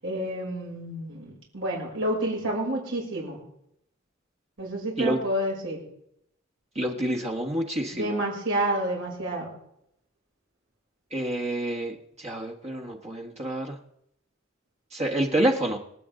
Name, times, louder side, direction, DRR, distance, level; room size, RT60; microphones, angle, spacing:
voice 1, 0.0-3.4 4.6-5.8 7.9-9.5, right 1 dB, 75° right, -3 dB, 6.4 m, -29 dB
voice 2, 6.7-8.2 11.1-13.8 14.9-15.8, right 1 dB, 35° right, 1 dB, 1.4 m, -28 dB
26.0 x 8.7 x 3.8 m, 0.76 s
head